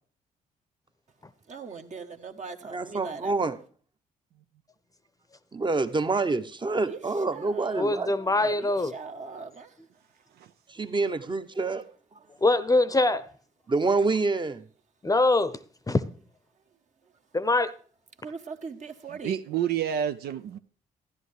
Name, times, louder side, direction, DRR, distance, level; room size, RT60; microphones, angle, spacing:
voice 1, 1.5-3.3 6.9-7.0 7.3-9.7 18.2-19.4, right 4 dB, 45° right, 1.1 m, -40 dB
voice 2, 2.7-3.6 5.5-8.1 10.7-11.8 13.7-14.6, right 3 dB, 30° right, 0.9 m, -27 dB
voice 3, 7.8-8.9 12.4-13.3 15.0-15.6 15.9-16.0 17.3-17.7, left 2 dB, 20° left, 0.7 m, -23 dB
voice 4, 19.1-20.6, right 9 dB, 75° right, 0.4 m, -29 dB
12.5 x 10.5 x 3.3 m
supercardioid pair, 50°, 17 cm